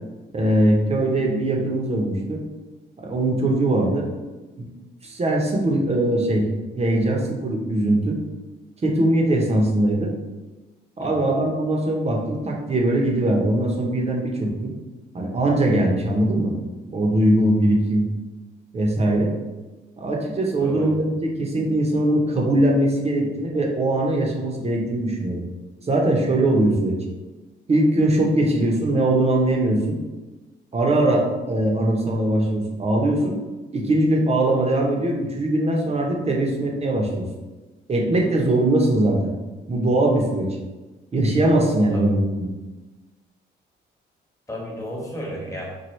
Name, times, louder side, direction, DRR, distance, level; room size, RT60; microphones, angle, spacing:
voice 1, 0.3-2.4 3.0-4.1 4.6-4.7 5.0-6.5 6.7-8.2 8.8-10.1 11.0-14.7 15.1-16.5 16.9-18.1 18.7-19.4 20.0-25.4 25.9-27.0 27.7-30.0 30.7-33.4 33.7-37.3 37.9-39.3 39.7-40.5 41.1-42.5, right 1 dB, 30° right, -1 dB, 0.8 m, -21 dB
voice 2, 11.0-11.3 20.6-20.9 41.9-42.1 44.5-45.7, equal, 15° left, -3 dB, 1.2 m, -33 dB
4.6 x 2.3 x 3.1 m, 1.2 s
cardioid pair, 90°, 20 cm